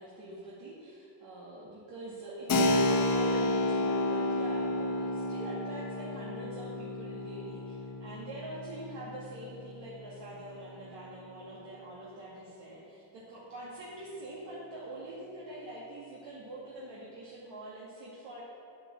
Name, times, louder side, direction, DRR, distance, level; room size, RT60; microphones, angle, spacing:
voice 1, 0.0-18.4, right 1 dB, 60° right, -7 dB, 2.2 m, -44 dB
Keyboard (musical), 2.5-10.9, left 2 dB, 45° left, 1.1 m, -31 dB
8.6 x 8.5 x 6.4 m, 2.7 s
cardioid pair, 115°, 48 cm